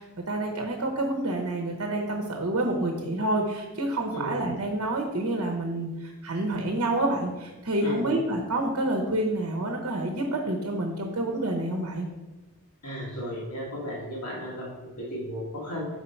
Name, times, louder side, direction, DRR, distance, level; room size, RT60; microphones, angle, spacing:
voice 1, 0.0-12.1, right 1 dB, 65° right, 2 dB, 0.8 m, -28 dB
voice 2, 7.8-8.1 12.8-15.9, equal, 75° left, -3 dB, 1.6 m, -34 dB
4.7 x 4.4 x 5.5 m, 1.1 s
head